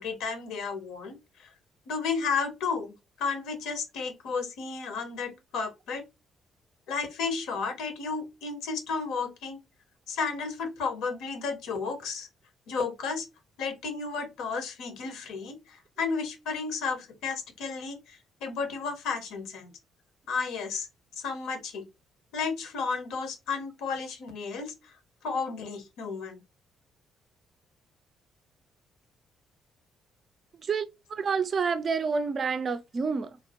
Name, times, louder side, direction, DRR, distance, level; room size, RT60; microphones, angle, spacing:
voice 1, 0.0-1.5 1.9-6.0 6.9-9.6 10.1-12.3 12.7-13.3 13.6-19.7 20.3-20.9 21.2-21.9 22.3-24.9 25.2-26.4, left 5 dB, 65° left, 0.6 m, -33 dB
voice 2, 30.5-33.4, right 5 dB, 45° right, 0.4 m, -29 dB
3.1 x 2.1 x 2.8 m
figure-of-eight pair, 45°, 0 cm